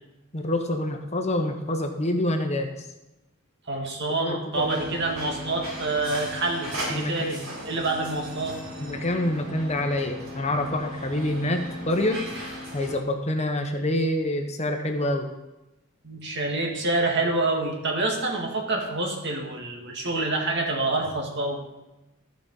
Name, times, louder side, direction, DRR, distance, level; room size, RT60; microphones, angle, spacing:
voice 1, 0.3-2.9 4.2-4.8 6.9-7.5 8.8-12.3 12.7-15.3, left 1 dB, 30° left, 4 dB, 1.0 m, -27 dB
voice 2, 3.7-7.4 7.6-8.6 16.0-21.7, right 2 dB, 55° right, 1 dB, 2.0 m, -27 dB
sound 1, 4.5-13.0, equal, 75° right, 4.1 m, -37 dB
13.5 x 5.2 x 5.4 m, 0.97 s
head